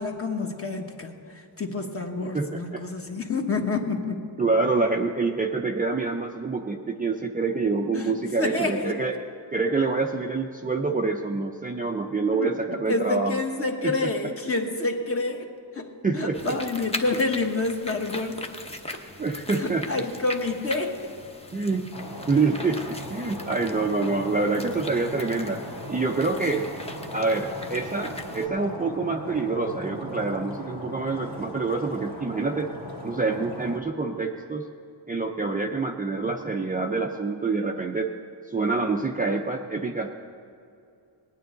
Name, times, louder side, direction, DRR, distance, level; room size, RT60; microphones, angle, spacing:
voice 1, 0.0-4.2 7.9-9.0 12.3-12.5 12.9-15.5 15.7-18.4 19.6-21.1, left 3 dB, 30° left, 3 dB, 1.3 m, -28 dB
voice 2, 2.3-2.8 3.8-3.9 4.4-9.1 9.5-13.4 13.8-14.1 16.0-16.6 19.2-20.1 21.5-21.9 22.3-25.6 25.9-26.7 27.1-32.7 33.0-34.7 35.1-38.1 38.5-40.1, right 3 dB, 20° right, 2 dB, 0.5 m, -26 dB
sound 1, 16.3-28.5, left 2 dB, 15° left, 0.8 m, -40 dB
Stream, 21.9-33.8, left 1 dB, 80° left, 2.7 m, -38 dB
18.5 x 9.5 x 3.9 m, 2.5 s
cardioid pair, 105°, 46 cm